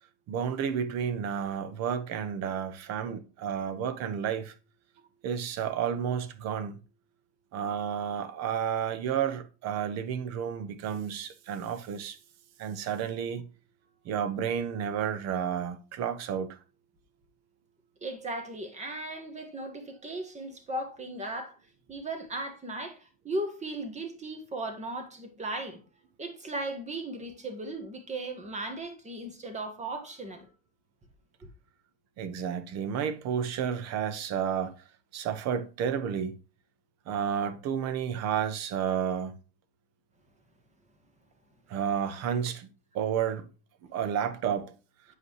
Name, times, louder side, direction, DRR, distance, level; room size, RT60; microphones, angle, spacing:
voice 1, 0.3-4.5 5.2-6.7 7.5-12.2 12.6-13.5 14.0-16.6 32.2-34.7 35.1-36.4 37.1-39.3 41.7-42.7 42.9-43.4 43.9-44.7, right 8 dB, 55° right, 0.9 m, -31 dB
voice 2, 18.0-21.5 21.9-25.8 26.2-30.5, right 2 dB, 20° right, 1.6 m, -37 dB
7.9 x 5.2 x 3.2 m
supercardioid pair, 105°, 32 cm